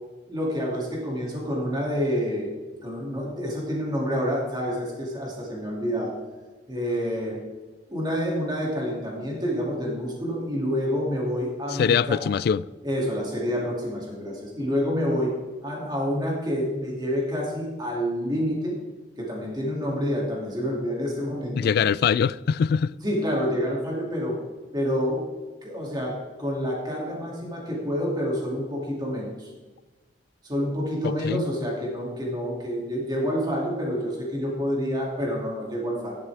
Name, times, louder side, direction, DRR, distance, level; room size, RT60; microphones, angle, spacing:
voice 1, 0.3-2.5 2.8-6.1 6.7-7.4 7.9-12.2 12.8-15.3 15.6-18.8 19.2-21.6 23.0-24.4 24.7-25.2 25.6-29.5 30.4-36.2, equal, 25° right, 2.6 m, -28 dB
voice 2, 11.7-12.7 21.5-22.9 31.0-31.4, left 7 dB, 60° left, 0.3 m, -23 dB
13.5 x 11.0 x 3.5 m
head